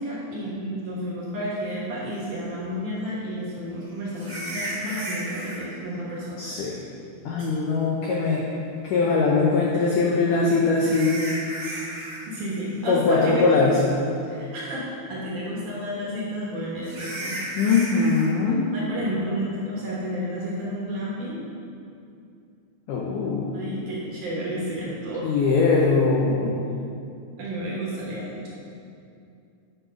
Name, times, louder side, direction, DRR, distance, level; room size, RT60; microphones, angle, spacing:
voice 1, 0.0-6.5 12.3-13.6 14.2-17.4 18.7-21.4 23.5-25.3 27.4-28.5, equal, 60° right, -6 dB, 2.4 m, -31 dB
sound 1, 2.3-2.4 4.1-5.6 7.4-7.5 10.0-12.2 12.5-12.8 13.2-13.3 13.9-14.0 16.8-18.3, right 1 dB, 40° right, 1.9 m, -34 dB
voice 2, 6.4-6.7 7.3-8.5 8.8-11.2 12.9-13.7 17.6-18.6 22.9-23.6 25.2-26.6, left 4 dB, 80° left, -3 dB, 1.8 m, -21 dB
10.5 x 5.2 x 5.0 m, 2.5 s
omnidirectional pair, 4.8 m